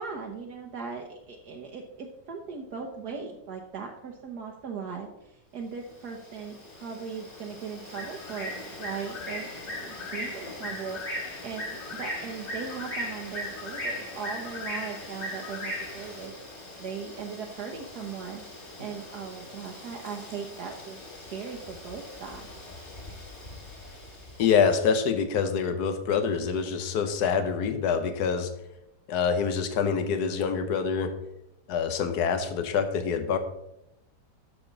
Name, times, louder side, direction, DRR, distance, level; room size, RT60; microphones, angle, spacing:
voice 1, 0.0-8.5 8.8-16.3 16.8-21.0 21.3-22.5, right 6 dB, 70° right, 1 dB, 1.5 m, -39 dB
Bird, 5.9-24.6, left 1 dB, 40° left, 3.0 m, -39 dB
voice 2, 24.4-28.5 29.1-31.1 31.7-33.4, left 6 dB, 70° left, 9 dB, 1.5 m, -26 dB
11.5 x 7.0 x 4.0 m, 0.84 s
omnidirectional pair, 1.8 m